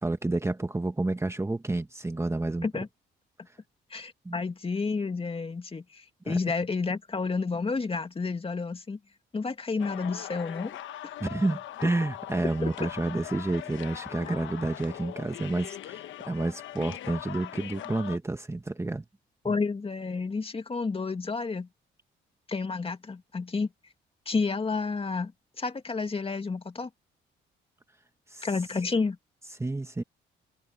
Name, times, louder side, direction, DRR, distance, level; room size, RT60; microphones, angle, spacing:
voice 1, 0.0-2.7 4.2-4.4 6.2-6.4 11.2-19.0 28.3-28.5 29.6-30.0, right 2 dB, 15° right, 1.3 m, -30 dB
voice 2, 3.9-9.0 9.3-10.8 12.6-12.7 14.3-14.4 19.4-21.7 22.5-23.7 24.3-25.3 25.6-26.9 28.4-29.2, left 4 dB, 30° left, 2.3 m, -30 dB
sound 1, 9.8-18.2, left 12 dB, 75° left, 1.1 m, -41 dB
cardioid pair, 90°, 20 cm